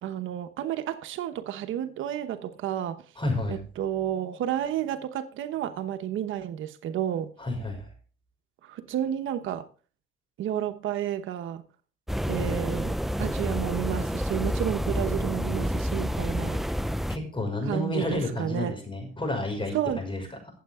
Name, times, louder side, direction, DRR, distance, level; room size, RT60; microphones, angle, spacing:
voice 1, 0.0-3.0 3.5-7.3 8.6-9.7 10.4-11.7 12.3-16.6 17.6-18.8 19.7-20.0, right 11 dB, 80° right, 1.0 m, -31 dB
voice 2, 3.2-3.6 7.4-7.9 17.1-20.2, left 2 dB, 25° left, 5.6 m, -30 dB
sound 1, 12.1-17.2, equal, ahead, 0.4 m, -29 dB
14.5 x 7.9 x 3.6 m
cardioid pair, 90°, 20 cm